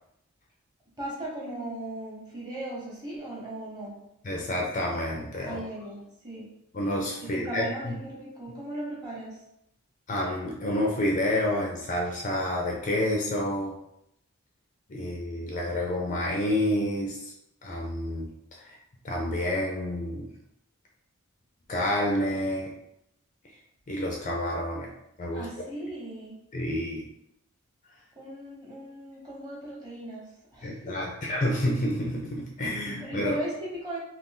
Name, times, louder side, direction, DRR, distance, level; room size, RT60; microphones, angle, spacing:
voice 1, 1.0-4.0 5.5-6.5 7.3-9.4 25.3-26.3 28.2-30.2 30.5-31.0 32.8-34.0, right 1 dB, 20° right, -6 dB, 1.0 m, -37 dB
voice 2, 4.2-5.6 6.7-8.0 10.1-13.8 14.9-17.3 17.6-18.3 18.5-18.8 19.0-20.3 21.7-22.7 23.9-24.9 25.2-25.5 26.5-27.1 30.6-33.4, left 1 dB, 35° left, -1 dB, 0.4 m, -29 dB
2.6 x 2.4 x 3.6 m, 0.79 s
head